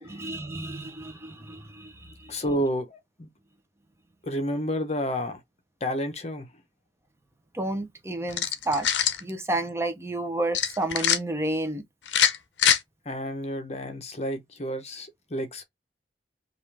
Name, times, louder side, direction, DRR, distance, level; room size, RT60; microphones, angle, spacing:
voice 1, 0.0-2.3 7.5-8.9 9.2-11.8, right 2 dB, 15° right, 0.6 m, -31 dB
voice 2, 2.3-3.3 4.2-5.4 5.8-6.5 13.0-15.6, equal, 35° left, 0.9 m, -30 dB
sound 1, 8.3-9.2 10.5-11.2 12.1-12.8, left 9 dB, 75° left, 0.6 m, -23 dB
5.3 x 2.5 x 3.3 m
head